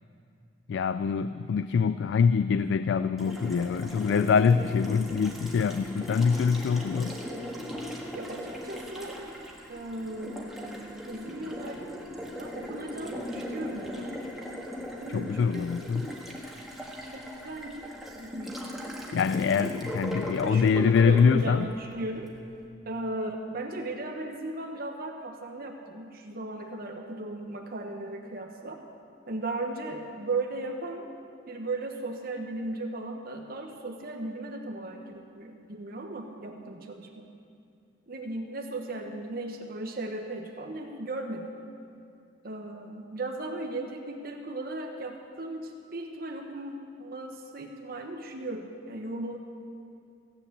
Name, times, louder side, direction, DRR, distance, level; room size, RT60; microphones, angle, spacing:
voice 1, 0.7-7.2 15.1-16.1 16.4-16.6 19.1-21.7, left 6 dB, 65° left, 13 dB, 0.3 m, -24 dB
Water tap faucet, 3.2-22.3, equal, ahead, 1.6 m, -39 dB
voice 2, 8.1-9.2 9.7-12.0 12.4-14.2 15.0-15.7 17.1-17.9 18.2-18.6 19.0-19.3 20.4-22.3 22.9-28.8 29.3-31.1 31.5-37.3 38.1-41.4 42.4-49.4, right 2 dB, 50° right, 3 dB, 1.1 m, -36 dB
16.0 x 8.6 x 8.0 m, 2.5 s
head